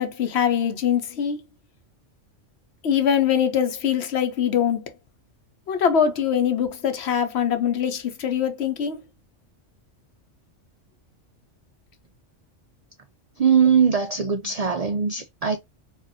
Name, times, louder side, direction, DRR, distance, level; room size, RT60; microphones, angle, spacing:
voice 1, 0.0-1.4 2.8-4.8 5.7-9.0, left 8 dB, 65° left, 0.9 m, -23 dB
voice 2, 13.4-15.6, right 6 dB, 80° right, 0.3 m, -20 dB
4.3 x 2.4 x 2.6 m
omnidirectional pair, 1.3 m